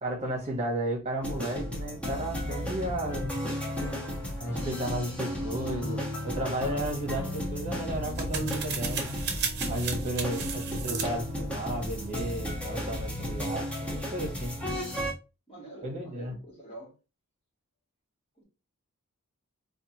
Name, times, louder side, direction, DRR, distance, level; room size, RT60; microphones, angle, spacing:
voice 1, 0.0-3.3 4.4-9.2 9.7-14.5 15.8-16.3, right 1 dB, 30° right, 1.3 m, -34 dB
sound 1, 1.2-15.1, equal, 5° left, 1.0 m, -34 dB
sound 2, 3.1-7.5, left 1 dB, 80° left, 0.8 m, -44 dB
sound 3, 7.4-12.7, right 5 dB, 50° right, 0.8 m, -37 dB
voice 2, 15.5-17.0 18.4-18.5, right 1 dB, 25° left, 1.9 m, -47 dB
4.3 x 2.5 x 2.9 m
head